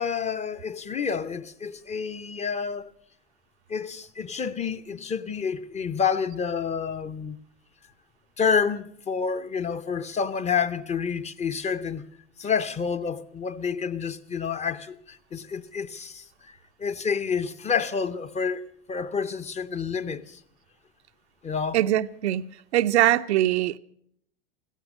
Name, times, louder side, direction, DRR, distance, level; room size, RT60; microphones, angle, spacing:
voice 1, 0.0-2.9 3.7-7.4 8.4-12.0 12.4-20.4 21.4-21.8, left 6 dB, 20° left, 0.7 m, -29 dB
voice 2, 21.7-22.4 22.7-23.8, right 13 dB, 70° right, 0.6 m, -22 dB
15.5 x 14.5 x 6.3 m
hypercardioid pair, 90°, 35 cm